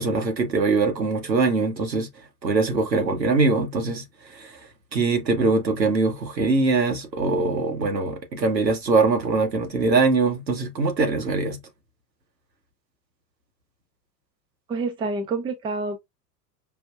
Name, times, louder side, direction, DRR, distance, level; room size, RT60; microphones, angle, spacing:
voice 1, 0.0-2.1 2.4-4.0 4.3-4.6 4.9-11.6, right 3 dB, 85° right, 1.0 m, -22 dB
voice 2, 14.7-16.0, right 3 dB, 10° right, 0.5 m, -27 dB
5.2 x 2.1 x 2.3 m
figure-of-eight pair, 90°, 49 cm